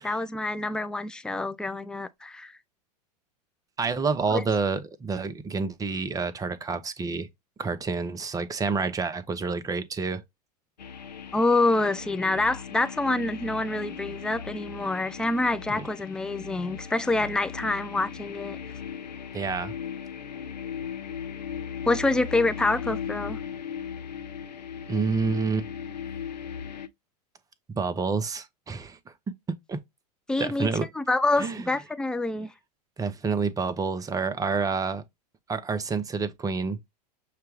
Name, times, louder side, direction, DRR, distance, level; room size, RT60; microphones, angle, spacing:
voice 1, 0.0-2.5 4.3-4.4 11.3-18.6 21.9-23.4 30.3-30.7 31.0-32.5, left 2 dB, 5° left, 0.3 m, -26 dB
voice 2, 3.8-7.3 7.6-10.2 15.8-15.9 19.3-19.7 24.9-25.7 27.7-29.0 29.7-29.8 30.4-30.9 31.4-31.7 33.0-35.0 35.5-36.8, right 4 dB, 15° right, 0.7 m, -28 dB
sound 1, 10.8-26.9, left 7 dB, 90° left, 0.6 m, -37 dB
6.6 x 2.2 x 3.1 m
hypercardioid pair, 100°, 21 cm